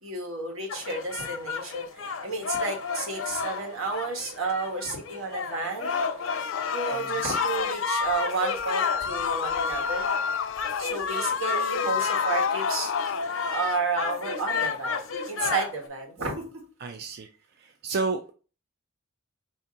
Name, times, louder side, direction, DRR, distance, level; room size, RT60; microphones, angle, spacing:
voice 1, 0.0-1.8 2.2-6.0 6.7-10.1 10.8-12.9 13.5-15.0 15.3-16.4, right 3 dB, 80° right, 1 dB, 1.4 m, -31 dB
sound 1, 0.7-15.9, left 5 dB, 90° left, 0.8 m, -32 dB
sound 2, 5.9-13.3, left 7 dB, 65° left, 0.3 m, -30 dB
voice 2, 6.9-7.2 16.8-17.3 17.6-18.3, right 4 dB, 50° right, 6 dB, 0.4 m, -31 dB
4.3 x 2.8 x 3.7 m, 0.36 s
head